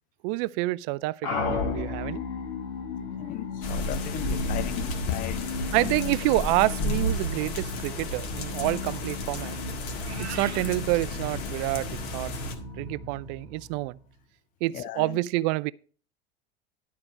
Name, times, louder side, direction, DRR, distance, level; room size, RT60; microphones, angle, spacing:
voice 1, 0.2-2.2 5.7-9.6 10.2-12.3 12.8-14.0 14.6-15.7, right 20 dB, 45° right, 0.4 m, -28 dB
sound 1, 1.2-14.1, left 4 dB, 60° left, 2.3 m, -35 dB
voice 2, 3.1-5.9 14.7-15.2, left 13 dB, 25° left, 0.4 m, -36 dB
sound 2, 3.6-12.6, left 1 dB, 45° left, 1.8 m, -33 dB
Meow, 9.9-10.7, right 6 dB, 85° right, 0.9 m, -40 dB
12.0 x 4.7 x 6.4 m
figure-of-eight pair, 75°, 32 cm